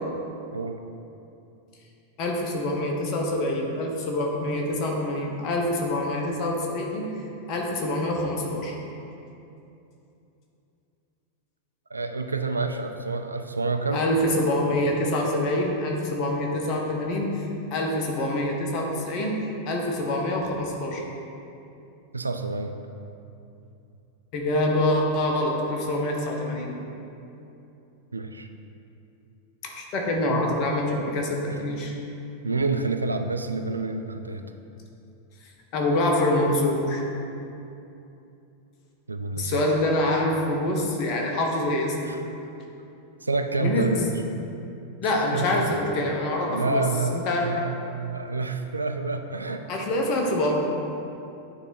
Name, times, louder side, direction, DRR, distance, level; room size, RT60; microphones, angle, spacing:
voice 1, 2.2-7.1 7.5-8.8 13.9-17.3 17.7-19.4 19.7-21.0 24.3-26.7 29.6-31.9 35.7-37.0 39.4-42.1 43.6-44.1 45.0-46.8 47.1-47.5 49.7-50.5, left 1 dB, 40° left, 0 dB, 1.0 m, -25 dB
voice 2, 11.9-14.0 22.1-22.7 28.1-28.5 30.3-30.4 31.5-31.6 32.4-34.4 39.1-39.6 42.1-42.2 43.2-44.1 45.3-45.7 46.5-49.6, right 3 dB, 80° right, 6 dB, 0.3 m, -28 dB
9.2 x 3.4 x 4.2 m, 2.8 s
figure-of-eight pair, 90°, 0 cm